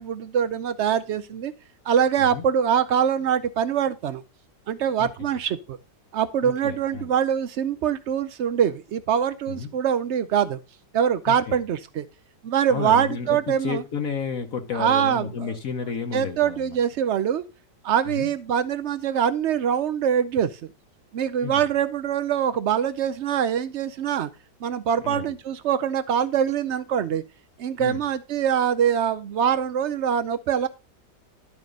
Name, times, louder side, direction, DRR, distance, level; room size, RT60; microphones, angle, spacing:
voice 1, 0.0-1.5 1.9-4.2 4.7-5.8 6.1-10.6 10.9-12.0 12.4-13.8 14.7-15.5 16.1-17.4 17.8-20.7 21.1-24.3 24.6-27.2 27.6-30.7, right 8 dB, 85° right, 0.6 m, -24 dB
voice 2, 6.4-7.1 9.5-9.7 11.3-11.6 12.7-16.8 18.0-18.3 21.4-21.7 25.0-25.3 27.8-28.0, left 6 dB, 55° left, 1.3 m, -32 dB
11.5 x 5.0 x 5.2 m
omnidirectional pair, 1.9 m